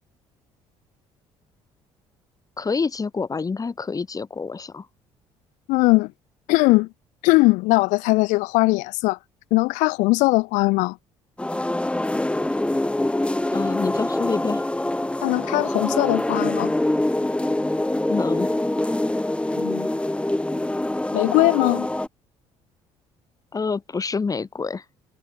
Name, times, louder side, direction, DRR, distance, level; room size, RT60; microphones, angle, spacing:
voice 1, 2.6-4.9 13.5-14.7 18.1-18.5 23.5-24.8, left 4 dB, 25° left, 1.3 m, -27 dB
voice 2, 5.7-6.1 6.5-6.9 7.2-9.2 9.5-11.0 15.2-16.7 19.6-19.9 21.1-21.9, left 23 dB, 80° left, 1.1 m, -20 dB
sound 1, 11.4-22.1, left 1 dB, 10° left, 1.7 m, -24 dB
supercardioid pair, 70°, 13 cm